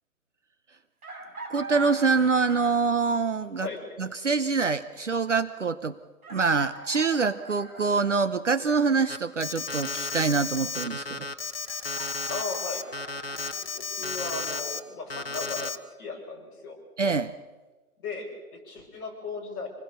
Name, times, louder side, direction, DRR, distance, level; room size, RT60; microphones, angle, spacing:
Chicken rooster, 1.0-3.0 4.7-4.8 6.2-8.1 11.6-13.5, right 2 dB, 70° right, 6.7 m, -42 dB
voice 1, 1.5-3.7 4.0-6.0 6.3-11.3 17.0-17.3, right 4 dB, 55° right, 13 dB, 0.9 m, -25 dB
voice 2, 3.6-4.0 12.3-12.9 13.1-16.8 18.0-19.7, left 4 dB, 15° left, -7 dB, 5.4 m, -37 dB
Alarm, 9.1-14.8 15.1-15.8, left 3 dB, 40° left, 1.2 m, -33 dB
26.5 x 21.0 x 6.7 m, 1.2 s
hypercardioid pair, 180°, 45 cm